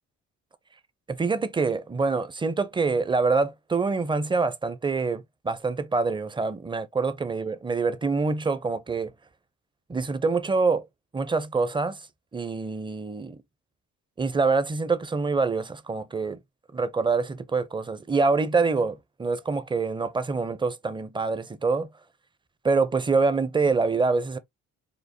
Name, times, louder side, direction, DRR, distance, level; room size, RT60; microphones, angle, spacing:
voice 1, 1.1-9.1 9.9-10.8 11.1-12.0 12.3-13.4 14.2-16.4 16.7-21.9 22.6-24.4, right 4 dB, 15° right, 0.5 m, -25 dB
5.0 x 2.0 x 2.7 m
cardioid pair, 90°, 30 cm